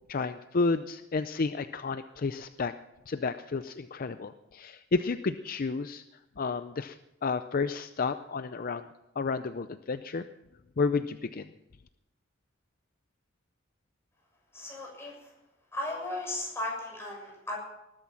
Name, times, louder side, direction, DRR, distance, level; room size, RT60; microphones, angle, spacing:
voice 1, 0.1-2.7 3.1-6.0 6.4-7.0 7.2-8.9 9.2-10.3 10.8-11.5, left 4 dB, 45° left, 11 dB, 0.5 m, -31 dB
voice 2, 14.5-15.1 15.7-17.6, left 1 dB, 15° left, -2 dB, 6.7 m, -36 dB
19.5 x 12.5 x 5.8 m, 0.93 s
head